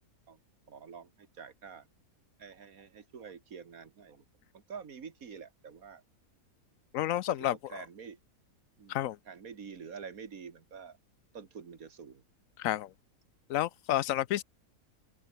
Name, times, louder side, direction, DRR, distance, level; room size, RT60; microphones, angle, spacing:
voice 1, 0.7-1.9 2.4-4.2 4.5-6.0 7.1-8.2 8.8-11.0 11.3-12.2, right 6 dB, 60° right, 2.1 m, -47 dB
voice 2, 6.9-7.7 8.9-9.2 12.6-12.9 13.5-14.4, left 13 dB, 65° left, 0.9 m, -30 dB
open air
omnidirectional pair, 1.7 m